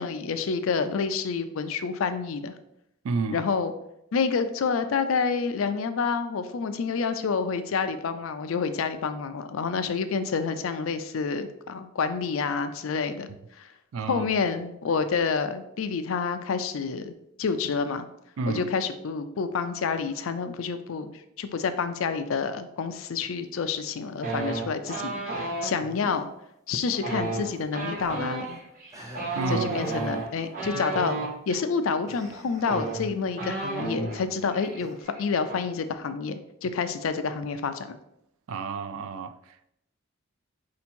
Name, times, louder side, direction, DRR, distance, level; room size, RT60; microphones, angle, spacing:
voice 1, 0.0-2.5 3.3-3.7 4.1-13.7 14.1-17.1 17.4-18.1 18.5-26.3 26.7-28.6 29.5-31.2 31.5-38.0, left 5 dB, 75° left, 10 dB, 0.4 m, -28 dB
voice 2, 3.0-3.4 13.3-13.4 13.9-14.3 18.4-18.7 29.3-29.7 30.7-30.8 31.5-31.6 38.5-39.7, right 4 dB, 85° right, 12 dB, 0.4 m, -31 dB
sound 1, 24.2-25.7 26.9-31.3 32.2-32.3 32.6-34.2 34.5-34.8 35.0-35.5, right 3 dB, 40° right, 1.1 m, -32 dB
sound 2, 25.5-26.2 27.2-28.6 28.9-30.5 30.9-31.3 32.1-33.2 34.8-35.0, right 1 dB, 15° right, 0.6 m, -46 dB
4.4 x 2.8 x 4.3 m, 0.80 s
head